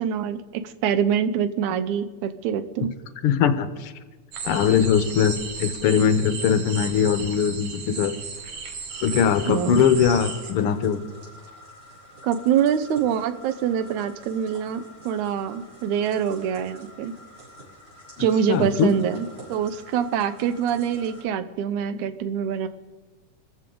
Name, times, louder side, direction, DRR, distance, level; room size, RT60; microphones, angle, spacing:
voice 1, 0.0-2.9 9.5-9.8 12.2-17.1 18.2-22.7, right 8 dB, 80° right, 11 dB, 2.2 m, -25 dB
voice 2, 3.2-3.9 4.4-8.1 9.0-11.0 18.2-18.9, left 7 dB, 70° left, 10 dB, 1.4 m, -21 dB
sound 1, 4.3-10.5, right 5 dB, 65° right, 2.6 m, -35 dB
sound 2, 8.9-21.2, equal, 40° right, 6.3 m, -47 dB
24.5 x 14.5 x 3.8 m, 1.3 s
omnidirectional pair, 3.4 m